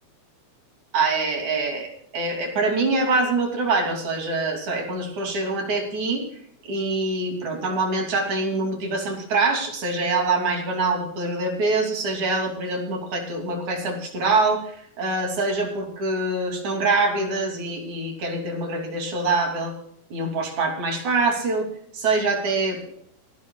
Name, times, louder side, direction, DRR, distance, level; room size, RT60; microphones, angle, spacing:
voice 1, 0.9-6.2 6.7-19.7 20.1-21.7 21.9-22.9, right 3 dB, 50° right, 2 dB, 4.1 m, -24 dB
29.5 x 10.5 x 2.4 m, 0.64 s
omnidirectional pair, 4.4 m